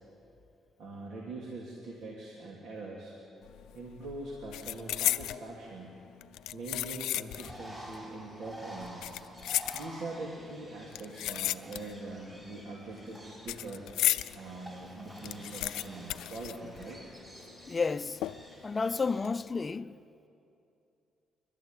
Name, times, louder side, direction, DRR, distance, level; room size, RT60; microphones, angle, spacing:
voice 1, 0.8-3.2 3.7-5.9 6.5-9.1 9.7-13.9 14.3-17.1, right 2 dB, 75° right, 3.0 m, -43 dB
sound 1, 3.5-3.8 4.0-5.4 6.2-7.6 7.9-8.0 8.8-10.2 10.9-12.1 12.4-14.4 14.8-14.9 15.0-17.2 17.4-17.5 18.2-18.6 19.1-19.3, left 14 dB, 90° left, 0.5 m, -34 dB
Bird, 7.3-19.3, equal, 25° right, 5.4 m, -50 dB
voice 2, 17.7-18.2 18.6-20.0, left 4 dB, 30° left, 0.5 m, -31 dB
28.5 x 12.0 x 9.1 m
cardioid pair, 90°, 0 cm